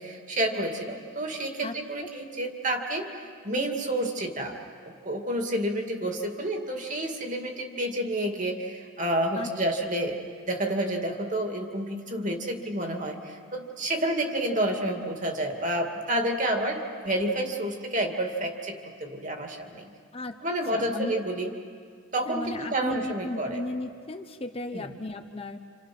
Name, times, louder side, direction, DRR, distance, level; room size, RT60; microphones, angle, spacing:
voice 1, 0.0-3.1 3.4-4.6 4.8-19.8 20.4-21.5 22.1-23.6 24.7-24.9, right 1 dB, 35° right, 3 dB, 2.4 m, -29 dB
voice 2, 1.6-2.1 9.4-9.5 20.1-20.4 20.7-21.1 22.3-25.6, left 2 dB, 25° left, 6 dB, 0.9 m, -35 dB
29.0 x 28.5 x 6.1 m, 2.1 s
head